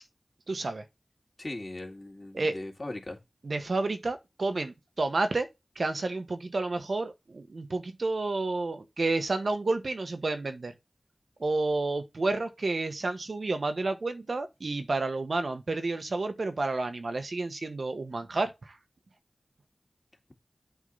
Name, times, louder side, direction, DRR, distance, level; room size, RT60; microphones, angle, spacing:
voice 1, 0.5-0.8 2.3-2.5 3.4-5.5 5.8-10.7 11.4-18.8, right 3 dB, 80° right, 1.1 m, -30 dB
voice 2, 1.4-3.2, left 2 dB, 40° left, 2.2 m, -39 dB
8.1 x 3.7 x 5.4 m
wide cardioid pair, 55°, 0 cm